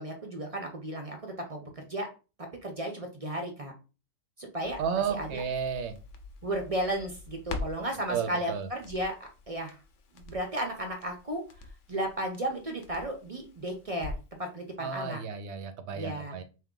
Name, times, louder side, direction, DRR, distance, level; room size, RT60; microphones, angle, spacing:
voice 1, 0.0-2.1 2.4-3.7 4.4-5.4 6.4-9.8 10.1-11.4 11.9-15.2 15.9-16.4, right 1 dB, 40° right, 3 dB, 0.5 m, -34 dB
Crackle, 4.6-14.4 14.7-14.8, left 3 dB, 65° left, 1.0 m, -45 dB
voice 2, 4.8-6.0 8.1-8.7 14.8-16.4, right 7 dB, 65° right, 9 dB, 0.8 m, -32 dB
3.5 x 2.8 x 3.7 m, 0.33 s
omnidirectional pair, 1.4 m